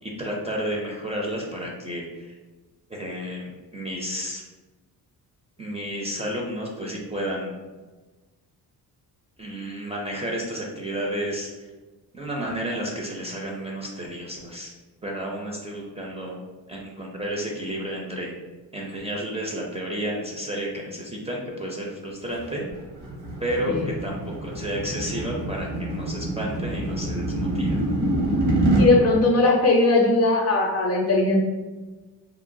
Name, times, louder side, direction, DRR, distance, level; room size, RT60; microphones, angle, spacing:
voice 1, 0.0-2.4 2.9-4.4 5.6-7.5 9.4-11.5 12.1-14.7 15.0-16.4 16.7-18.3 18.7-22.7 23.4-27.8, equal, 15° right, -2 dB, 0.4 m, -31 dB
sound 1, 22.4-28.9, right 1 dB, 75° right, 0.9 m, -26 dB
voice 2, 28.8-31.4, left 2 dB, 40° left, 1 dB, 0.5 m, -19 dB
2.9 x 2.1 x 2.5 m, 1.3 s
cardioid pair, 85°, 39 cm